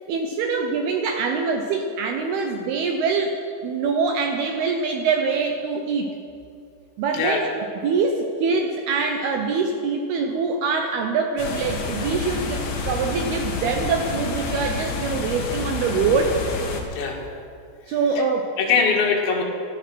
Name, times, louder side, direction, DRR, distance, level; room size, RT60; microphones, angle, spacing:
voice 1, 0.1-3.4 3.6-6.2 7.0-7.5 7.8-16.4 17.9-18.5, right 4 dB, 75° right, 4 dB, 2.4 m, -24 dB
sound 1, 11.4-16.8, left 4 dB, 55° left, 2.2 m, -29 dB
voice 2, 16.9-17.2 17.9-18.2 18.6-19.4, left 5 dB, 75° left, 0 dB, 4.1 m, -22 dB
16.0 x 14.5 x 6.2 m, 2.4 s
omnidirectional pair, 5.4 m